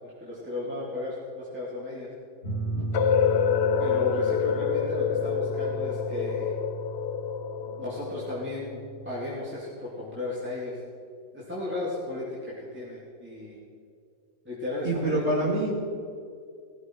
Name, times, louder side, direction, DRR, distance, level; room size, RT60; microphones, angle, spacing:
voice 1, 0.0-2.1 3.8-6.5 7.8-8.8 9.0-10.8 11.3-13.6 14.4-15.5, left 2 dB, 5° right, -7 dB, 2.6 m, -34 dB
sound 1, 2.4-9.3, right 2 dB, 40° left, 2.8 m, -36 dB
sound 2, 2.9-8.8, left 7 dB, 65° left, 0.6 m, -27 dB
voice 2, 14.8-15.7, right 2 dB, 35° right, -5 dB, 2.6 m, -26 dB
17.5 x 14.0 x 4.6 m, 2.3 s
omnidirectional pair, 2.0 m